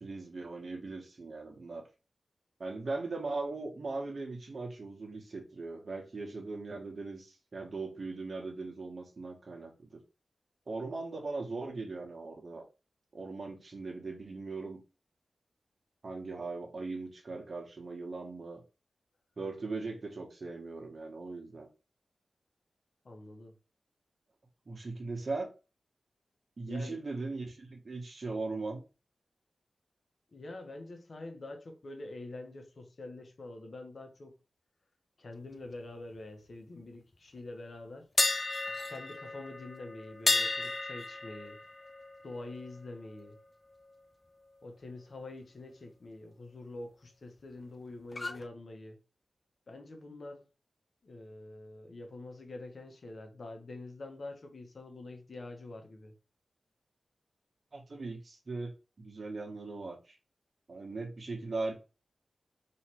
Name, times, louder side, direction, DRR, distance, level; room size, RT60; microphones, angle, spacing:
voice 1, 0.0-1.9 2.6-10.0 10.7-12.6 13.1-14.8 16.0-18.6 19.4-21.7 24.7-25.5 26.6-28.8 57.7-58.7 59.0-60.2 60.7-61.7, right 3 dB, 60° right, 1.3 m, -39 dB
voice 2, 23.0-23.5 26.7-27.0 30.3-34.3 35.2-38.1 38.9-41.6 42.2-43.4 44.6-49.0 49.7-50.4 51.0-56.1, left 2 dB, 65° left, 1.0 m, -46 dB
sound 1, 38.2-44.1 44.4-44.6 48.1-48.4, left 2 dB, 40° left, 0.5 m, -34 dB
3.1 x 3.1 x 4.4 m
cardioid pair, 50°, 0 cm